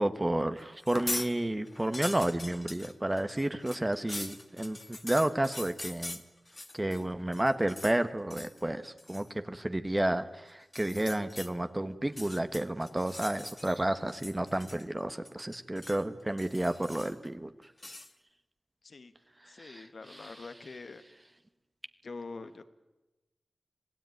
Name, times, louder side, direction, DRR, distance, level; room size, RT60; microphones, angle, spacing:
voice 1, 0.0-6.2 6.7-17.5 19.6-20.3, right 1 dB, 20° right, 9 dB, 1.3 m, -31 dB
sound 1, 0.8-1.3 1.7-7.0 7.3-8.0 8.3-8.6 9.0-9.3 10.6-11.5 12.0-13.8 14.1-15.0 15.2-16.0 16.4-17.3 17.8-18.1, left 2 dB, 30° left, 1.8 m, -42 dB
voice 2, 19.5-21.0 22.0-22.7, left 3 dB, 70° left, 11 dB, 1.6 m, -44 dB
26.5 x 18.0 x 9.4 m, 1.1 s
cardioid pair, 55°, 0 cm